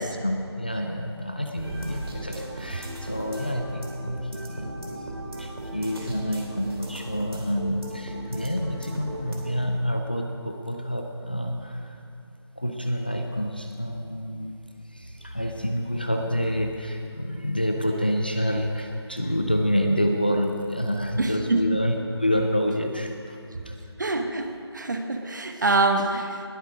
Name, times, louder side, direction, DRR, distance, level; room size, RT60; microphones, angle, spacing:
voice 1, 0.0-4.8 5.4-23.4 23.7-23.8, equal, 20° left, 3 dB, 0.5 m, -28 dB
sound 1, 1.6-9.6, right 1 dB, 60° right, 2.9 m, -37 dB
voice 2, 21.2-21.6 24.0-26.4, right 2 dB, 45° right, 6 dB, 1.1 m, -25 dB
20.0 x 8.0 x 4.9 m, 2.6 s
figure-of-eight pair, 175°, 14 cm